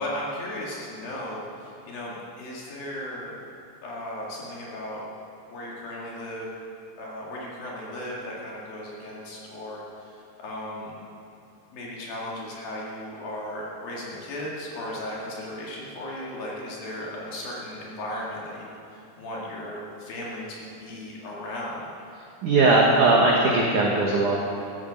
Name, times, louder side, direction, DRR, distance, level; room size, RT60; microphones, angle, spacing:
voice 1, 0.0-3.3 3.8-5.0 5.5-6.5 7.0-10.9 11.7-21.9, left 1 dB, 55° left, -4 dB, 3.3 m, -36 dB
voice 2, 22.4-24.4, right 2 dB, 70° right, -3 dB, 1.9 m, -19 dB
14.0 x 13.5 x 5.2 m, 2.8 s
omnidirectional pair, 5.6 m